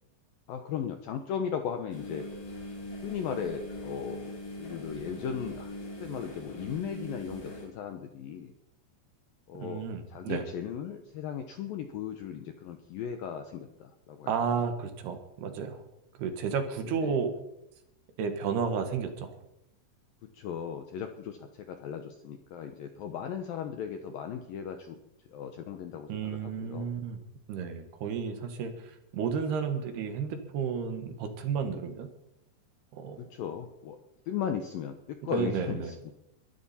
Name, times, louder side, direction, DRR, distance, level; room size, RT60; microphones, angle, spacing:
voice 1, 0.5-2.2 3.0-5.7 6.0-8.5 9.5-9.8 10.1-14.3 16.9-17.2 20.3-25.0 25.3-26.9 33.2-34.0 34.3-36.0, left 8 dB, 80° left, 6 dB, 2.1 m, -37 dB
sound 1, 1.9-7.7, left 1 dB, 50° left, 5.3 m, -41 dB
voice 2, 9.5-10.4 14.3-15.8 16.2-17.3 18.2-19.4 26.1-27.2 27.5-32.1 32.9-33.2 35.3-35.9, right 6 dB, 70° right, 7 dB, 3.3 m, -32 dB
22.5 x 13.0 x 4.3 m, 0.85 s
omnidirectional pair, 5.3 m